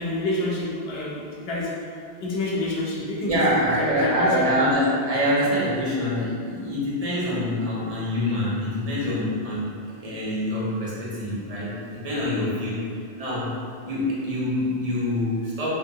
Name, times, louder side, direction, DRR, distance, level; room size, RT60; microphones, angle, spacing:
voice 1, 0.0-1.7 2.2-4.6, left 2 dB, 70° left, -5 dB, 0.8 m, -28 dB
voice 2, 3.2-9.7 10.0-12.8 13.2-13.5 13.9-15.8, equal, 45° right, -7 dB, 0.6 m, -25 dB
2.5 x 2.2 x 2.7 m, 2.3 s
omnidirectional pair, 1.1 m